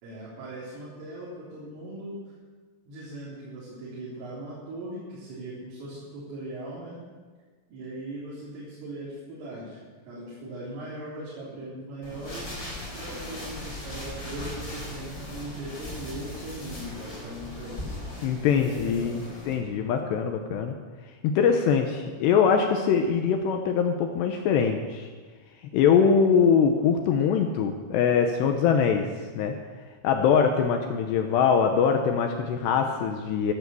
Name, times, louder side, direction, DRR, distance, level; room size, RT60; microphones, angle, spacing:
voice 1, 0.0-2.3 2.9-7.0 7.7-12.6 12.9-17.9 18.5-19.1, right 1 dB, 75° right, -8 dB, 6.1 m, -39 dB
sound 1, 12.0-19.5, left 1 dB, 15° left, 5.0 m, -38 dB
voice 2, 18.2-19.2 19.5-20.7 21.2-25.1 25.6-29.1 29.4-29.5 30.0-33.5, left 6 dB, 75° left, 5 dB, 2.6 m, -23 dB
14.0 x 12.5 x 7.0 m, 1.4 s
omnidirectional pair, 5.8 m